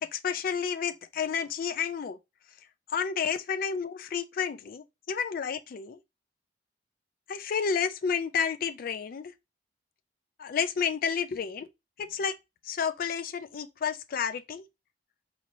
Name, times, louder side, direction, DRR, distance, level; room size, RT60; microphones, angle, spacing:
voice 1, 0.0-2.2 2.9-6.0 7.3-9.3 10.4-11.7 12.0-12.3 12.6-14.6, left 6 dB, 55° left, 0.4 m, -31 dB
4.2 x 2.9 x 2.6 m
head